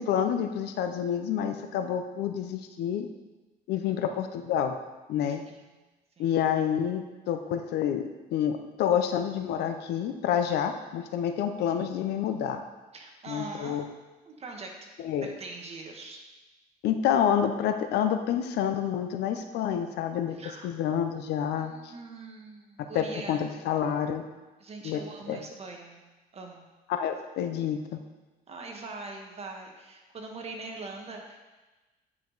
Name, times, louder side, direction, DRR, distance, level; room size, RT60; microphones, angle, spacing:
voice 1, 0.0-3.1 3.7-4.8 5.1-5.4 6.2-8.0 8.3-12.6 13.3-13.9 15.0-15.3 16.8-20.4 20.6-21.9 22.9-24.2 24.8-25.0 25.3-25.4 26.9-28.0, left 9 dB, 80° left, 7 dB, 0.7 m, -28 dB
voice 2, 5.3-5.7 6.2-6.3 12.9-13.9 14.3-14.9 15.2-16.2 20.4-20.7 21.6-23.5 24.6-26.0 26.3-26.7 28.5-31.4, right 3 dB, 40° right, 2 dB, 1.4 m, -42 dB
9.4 x 4.9 x 4.0 m, 1.2 s
cardioid pair, 110°, 17 cm